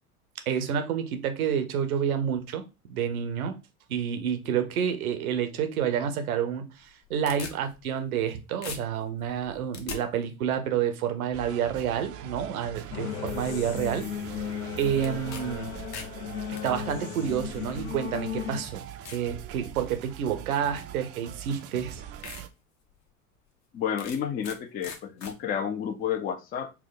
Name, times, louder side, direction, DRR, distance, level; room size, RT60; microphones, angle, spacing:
voice 1, 0.5-3.6 3.9-14.1 14.8-15.7 16.5-18.8 19.1-22.0, right 8 dB, 75° right, 0.8 m, -29 dB
sound 1, 6.8-8.3 8.6-10.0 15.0-15.4 15.7-16.7 17.6-17.7 18.3-18.4 19.0-19.3 19.8-20.1 21.3-21.4 21.8-21.9 22.2-22.4 22.9-23.0 24.0-24.6 24.8-25.3, left 5 dB, 40° left, 0.8 m, -41 dB
sound 2, 11.3-22.5, right 10 dB, 35° right, 0.4 m, -42 dB
sound 3, 12.9-18.6, left 9 dB, 75° left, 0.7 m, -36 dB
voice 2, 23.7-26.7, left 8 dB, 20° left, 0.4 m, -31 dB
4.5 x 2.1 x 3.7 m
hypercardioid pair, 75°, 43 cm